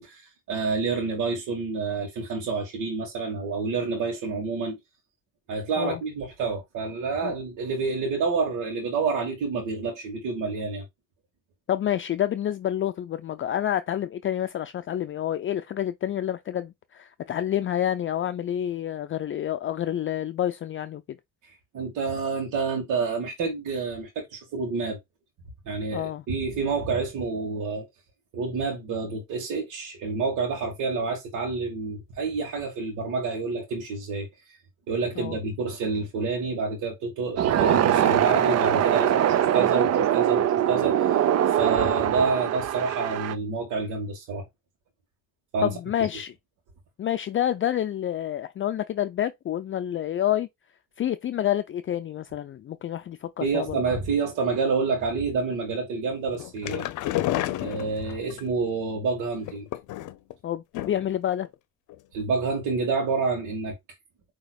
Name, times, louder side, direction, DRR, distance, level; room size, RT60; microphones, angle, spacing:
voice 1, 0.0-4.8 5.5-10.8 21.4-25.0 25.6-27.9 28.3-34.6 34.9-41.2 41.5-44.5 45.5-45.7 53.4-56.8 57.6-59.7 62.1-63.7, right 4 dB, 85° right, 1.4 m, -28 dB
voice 2, 11.7-21.0 25.9-26.2 35.2-35.4 45.6-46.3 47.0-50.5 51.0-53.8 60.4-61.5, left 11 dB, 45° left, 0.4 m, -28 dB
sound 1, 37.4-43.3, right 10 dB, 60° right, 0.6 m, -22 dB
sound 2, 56.3-58.4 59.4-60.3 60.7-61.2 61.4-61.5 61.9-62.0, left 14 dB, 80° left, 0.6 m, -30 dB
6.0 x 2.9 x 2.3 m
cardioid pair, 90°, 30 cm